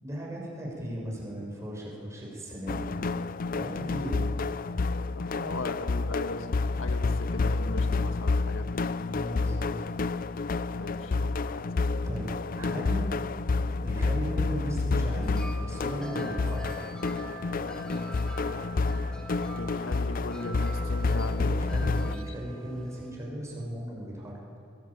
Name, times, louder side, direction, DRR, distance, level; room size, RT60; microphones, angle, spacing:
voice 1, 0.0-3.0 3.5-4.4 9.0-9.9 12.0-13.1 13.7-17.0 21.4-24.4, equal, 15° right, -2 dB, 6.7 m, -37 dB
sound 1, 2.7-22.2, left 3 dB, 45° left, 0.5 m, -29 dB
sound 2, 5.0-19.6, right 1 dB, 20° left, 4.0 m, -58 dB
voice 2, 5.1-8.8 10.8-11.6 19.6-21.7 22.0-22.1, left 2 dB, 75° left, 7 dB, 1.5 m, -38 dB
sound 3, 15.1-23.1, right 3 dB, 5° left, 2.0 m, -44 dB
22.0 x 18.0 x 8.8 m, 2.3 s
head